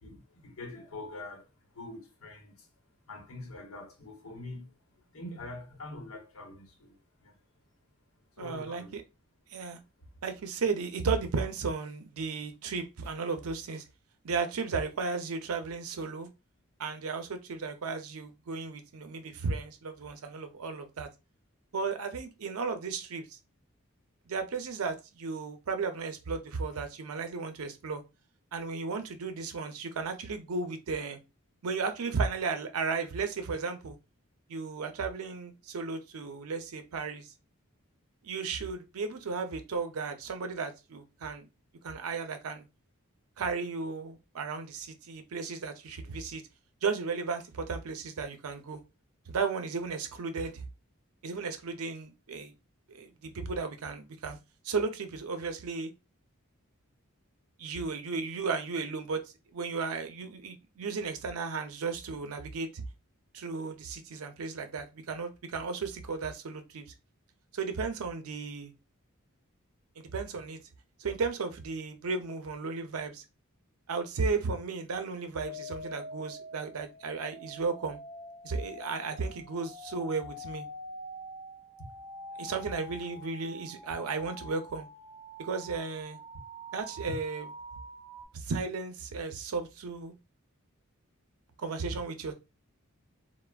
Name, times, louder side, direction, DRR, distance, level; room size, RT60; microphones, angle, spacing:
voice 1, 0.0-2.7 3.1-7.4 8.4-8.9 87.1-87.2, left 2 dB, 80° left, 0.8 m, -44 dB
voice 2, 8.4-9.0 9.5-9.8 10.2-13.8 14.2-16.3 16.8-21.1 21.7-23.4 24.3-28.0 28.5-31.2 31.6-34.0 34.5-37.3 38.2-41.5 41.8-42.7 43.4-46.4 46.8-48.8 49.3-50.6 51.2-52.5 52.9-54.4 54.6-55.9 57.6-59.2 59.5-62.8 63.3-66.9 67.5-68.7 70.0-70.6 71.0-73.2 73.9-78.0 78.4-80.7 82.4-84.9 85.4-86.2 86.7-87.5 88.3-90.1 91.6-92.3, right 4 dB, 85° right, 0.5 m, -34 dB
sound 1, 75.4-88.3, equal, 25° right, 0.8 m, -46 dB
3.2 x 2.1 x 2.2 m
head